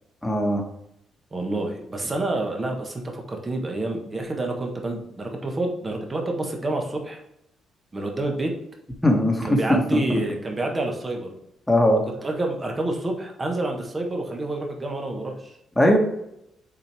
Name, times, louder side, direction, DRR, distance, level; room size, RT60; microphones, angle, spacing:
voice 1, 0.2-0.6 9.0-10.0 11.7-12.0 15.8-16.0, left 1 dB, 5° left, 1 dB, 1.5 m, -19 dB
voice 2, 1.3-7.2 7.9-8.6 9.4-11.3 12.2-15.6, right 2 dB, 25° right, 2 dB, 1.4 m, -28 dB
6.5 x 4.5 x 3.5 m, 0.80 s
cardioid pair, 90°, 0 cm